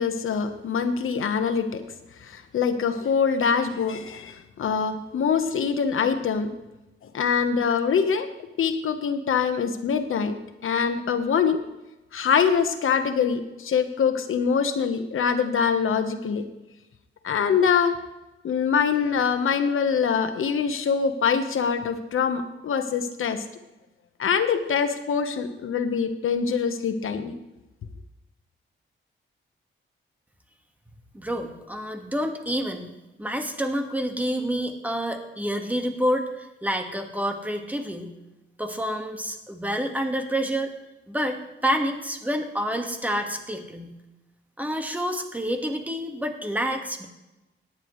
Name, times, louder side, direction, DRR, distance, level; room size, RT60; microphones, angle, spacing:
voice 1, 0.0-1.8 2.2-6.5 7.1-8.3 8.6-10.4 10.6-11.6 12.1-16.4 17.2-18.0 18.4-23.4 24.2-27.3, left 6 dB, 80° left, 8 dB, 1.1 m, -24 dB
voice 2, 31.1-32.9 33.2-38.1 38.6-40.7 41.1-43.9 44.6-47.1, equal, 5° right, 5 dB, 1.6 m, -28 dB
17.5 x 10.5 x 3.2 m, 1.0 s
cardioid pair, 95°, 21 cm